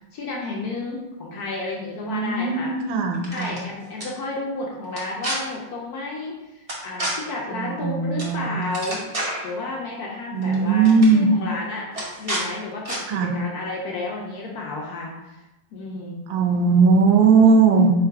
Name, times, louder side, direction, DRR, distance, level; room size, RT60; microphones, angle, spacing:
voice 1, 0.1-2.7 3.3-11.9 12.2-15.4 15.7-16.2, left 2 dB, 70° left, -2 dB, 1.0 m, -32 dB
voice 2, 2.0-3.5 7.5-8.6 10.3-11.3 13.1-13.3 16.3-17.9, right 4 dB, 85° right, 3 dB, 1.3 m, -18 dB
sound 1, 3.1-3.6 4.0-4.1 4.9-5.4 6.7-7.1 8.2-8.4 8.6-9.5 10.4-10.6 10.8-11.1 11.9-12.4 12.8-13.0, right 1 dB, 55° right, 0.4 m, -29 dB
3.7 x 2.4 x 4.5 m, 0.99 s
omnidirectional pair, 2.0 m